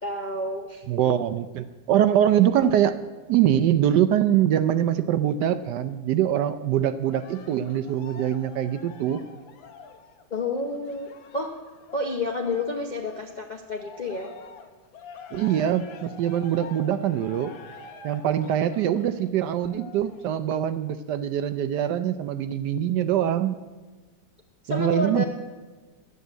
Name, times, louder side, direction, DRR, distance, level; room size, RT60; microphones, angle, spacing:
voice 1, 0.0-0.8 10.3-11.5 11.9-14.3 24.6-25.2, left 2 dB, 45° left, 1 dB, 0.5 m, -29 dB
voice 2, 0.9-3.0 3.3-9.2 15.3-17.5 18.0-23.6 24.7-25.2, right 10 dB, 75° right, 12 dB, 1.1 m, -23 dB
Cheering, 7.0-13.3 13.7-20.3 20.9-21.0, left 5 dB, 85° left, 1.7 m, -47 dB
11.0 x 8.1 x 7.9 m, 1.3 s
omnidirectional pair, 2.1 m